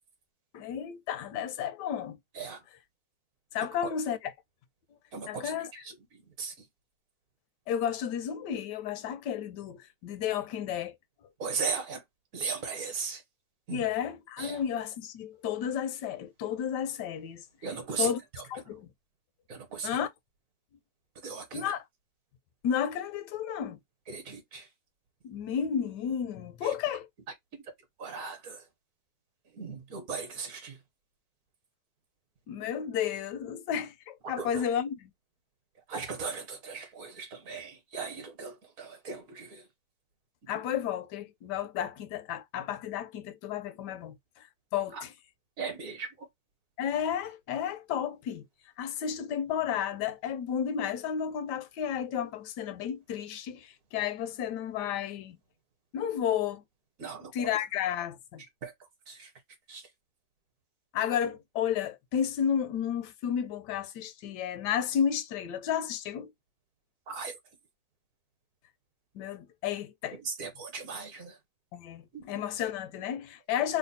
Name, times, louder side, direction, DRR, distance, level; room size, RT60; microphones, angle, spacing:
voice 1, 0.5-2.2 3.5-4.2 5.3-5.7 7.7-10.9 13.7-17.4 18.0-18.2 18.5-18.9 19.8-20.1 21.5-21.8 22.6-23.8 25.2-27.1 32.5-35.0 40.5-44.5 44.7-45.0 46.8-48.5 48.8-55.4 55.9-56.6 57.3-58.4 60.9-66.3 69.1-70.2 71.7-73.8, left 8 dB, 80° left, 1.2 m, -32 dB
voice 2, 5.1-6.7 11.4-12.0 12.3-13.2 13.7-13.9 14.4-14.6 17.6-18.7 19.5-20.0 21.2-21.8 24.1-24.7 26.6-26.7 28.0-28.7 29.4-30.8 34.2-34.6 35.9-39.7 40.4-40.5 44.9-45.0 45.6-46.3 57.0-57.5 58.6-59.3 59.7-59.9 67.1-67.4 70.1-71.4 72.1-72.2 73.5-73.6, right 5 dB, 60° right, 1.2 m, -38 dB
3.3 x 2.0 x 4.0 m
omnidirectional pair, 1.8 m